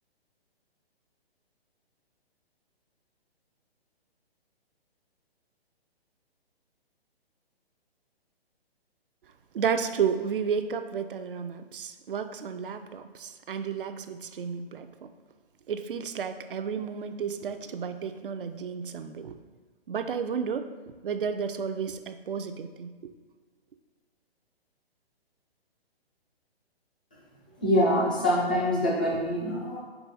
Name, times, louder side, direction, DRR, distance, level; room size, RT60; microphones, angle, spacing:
voice 1, 9.5-14.9 15.7-19.4 19.9-20.7 21.0-23.1, right 7 dB, 55° right, 9 dB, 0.5 m, -32 dB
voice 2, 27.6-29.8, equal, 10° left, -6 dB, 0.3 m, -25 dB
4.9 x 3.8 x 5.3 m, 1.4 s
figure-of-eight pair, 130°, 32 cm